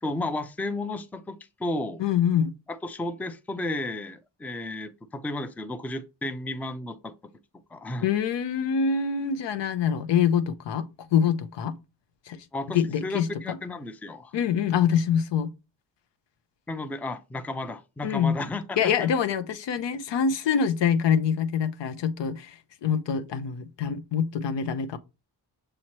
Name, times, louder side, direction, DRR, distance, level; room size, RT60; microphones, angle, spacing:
voice 1, 0.0-2.0 2.8-7.1 7.7-8.1 12.5-14.3 16.7-19.1, left 2 dB, 5° left, 0.3 m, -33 dB
voice 2, 2.0-2.5 8.0-11.7 12.3-12.4 12.7-13.6 14.3-15.5 18.0-18.4 18.8-25.0, left 7 dB, 85° left, 0.6 m, -25 dB
6.3 x 2.9 x 2.9 m
wide cardioid pair, 105°, 42 cm